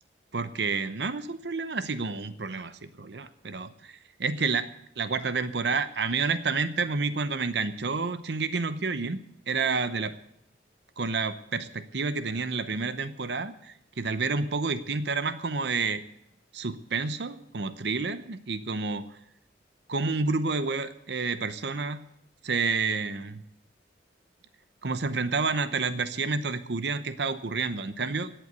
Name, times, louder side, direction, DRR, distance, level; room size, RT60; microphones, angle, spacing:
voice 1, 0.3-4.7 5.0-9.2 9.5-10.1 11.0-16.0 16.5-19.0 19.9-22.0 22.4-23.4 24.8-28.3, right 4 dB, 65° right, 12 dB, 0.8 m, -29 dB
17.5 x 7.9 x 8.0 m, 0.76 s
head